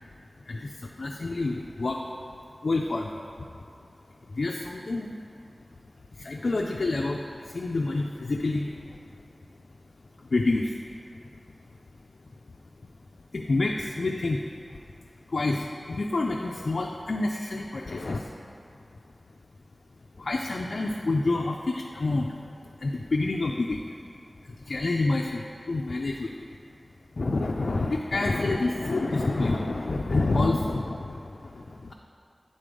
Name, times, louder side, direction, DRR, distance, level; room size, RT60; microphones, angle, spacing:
voice 1, 0.5-2.0 2.6-3.2 4.3-5.2 6.1-9.0 10.3-10.8 13.3-14.4 15.3-18.3 20.2-22.4 22.6-23.8 24.4-26.3 27.2-31.9, left 2 dB, 85° left, 0 dB, 0.3 m, -28 dB
7.5 x 3.9 x 5.1 m, 2.6 s
wide cardioid pair, 55°, 0 cm